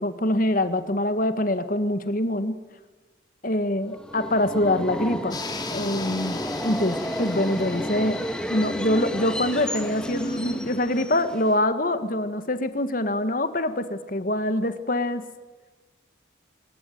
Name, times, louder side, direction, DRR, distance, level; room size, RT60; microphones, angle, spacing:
voice 1, 0.0-2.6 3.4-5.4 5.7-15.2, left 1 dB, 45° left, 11 dB, 1.8 m, -25 dB
Subway metro underground, 3.9-11.7, equal, 5° left, 1.7 m, -32 dB
sound 1, 5.3-10.5, left 3 dB, 20° left, 2.9 m, -38 dB
25.0 x 20.0 x 9.5 m, 1.3 s
head